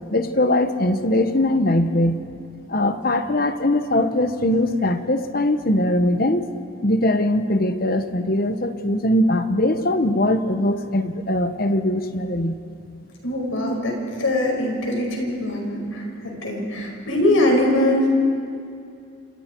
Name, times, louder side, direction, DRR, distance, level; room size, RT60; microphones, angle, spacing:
voice 1, 0.0-2.2 2.7-6.5 6.8-12.6, left 1 dB, 45° left, 9 dB, 1.1 m, -21 dB
voice 2, 13.2-18.1, left 1 dB, 85° left, 0 dB, 5.6 m, -22 dB
29.5 x 27.5 x 4.6 m, 2.4 s
head